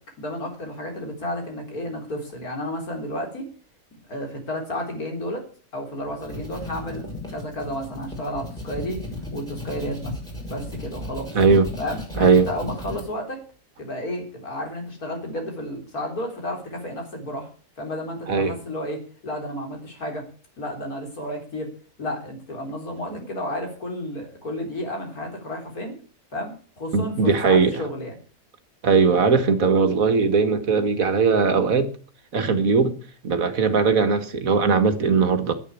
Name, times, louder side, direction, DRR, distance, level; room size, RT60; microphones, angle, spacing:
voice 1, 0.2-3.4 4.1-5.4 5.7-9.0 9.3-10.2 10.5-11.3 11.8-13.4 13.8-17.5 17.8-20.3 20.6-21.7 22.0-26.0 26.3-28.2, left 1 dB, 80° left, 4.5 m, -32 dB
sound 1, 6.0-13.0, left 1 dB, ahead, 6.5 m, -35 dB
voice 2, 11.4-11.7 12.2-12.5 18.3-18.6 23.1-23.2 26.9-27.8 28.8-31.9 32.3-33.0 33.2-35.5, right 5 dB, 70° right, 2.0 m, -19 dB
10.5 x 10.5 x 8.3 m
omnidirectional pair, 1.5 m